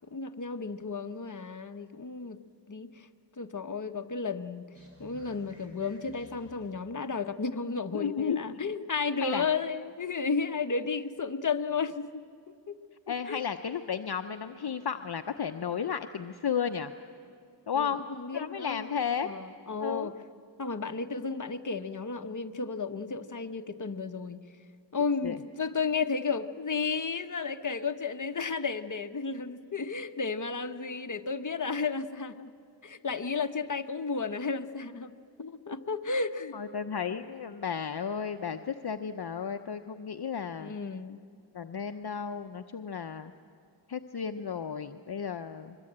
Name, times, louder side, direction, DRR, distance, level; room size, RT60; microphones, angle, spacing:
voice 1, 0.0-2.4 2.7-3.1 3.4-4.7 5.0-12.8 13.3-13.4 17.7-18.9 19.2-20.1 20.6-24.4 24.9-32.5 32.8-36.6 40.6-41.2, left 4 dB, 45° left, 7 dB, 1.0 m, -33 dB
sound 1, 4.7-7.0, left 1 dB, 30° right, 5.3 m, -55 dB
voice 2, 7.9-8.4 9.2-9.5 13.1-16.9 17.7-18.0 18.3-19.3 19.8-20.1 25.2-25.4 36.5-40.8 41.5-43.3 43.9-45.8, left 7 dB, 60° left, 7 dB, 0.7 m, -33 dB
24.0 x 22.5 x 8.8 m, 2.3 s
wide cardioid pair, 65°, 43 cm